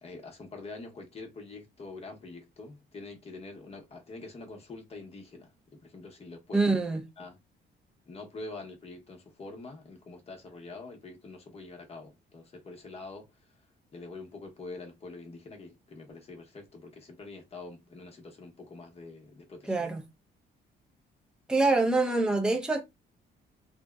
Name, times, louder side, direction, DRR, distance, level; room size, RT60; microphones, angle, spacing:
voice 1, 0.0-6.8 7.2-7.4 8.1-13.5 13.9-19.9, left 3 dB, 30° left, 0.8 m, -45 dB
voice 2, 6.5-7.0 19.7-20.0 21.5-22.8, right 3 dB, 5° right, 0.5 m, -25 dB
2.6 x 2.1 x 2.2 m
cardioid pair, 90°, 20 cm